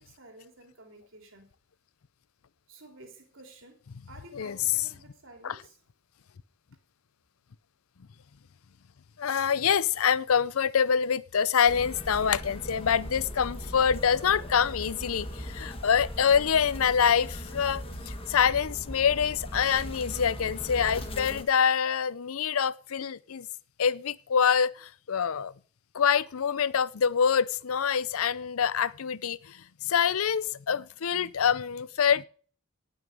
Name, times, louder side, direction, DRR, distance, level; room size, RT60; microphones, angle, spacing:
voice 1, 0.0-1.5 2.7-3.8 4.1-5.8, right 2 dB, 65° right, 3.5 m, -52 dB
voice 2, 9.2-23.5 23.8-25.5 25.9-29.4 29.8-32.2, left 7 dB, 85° left, 0.6 m, -25 dB
sound 1, 11.7-21.4, equal, 25° left, 1.5 m, -39 dB
18.0 x 6.4 x 5.4 m
head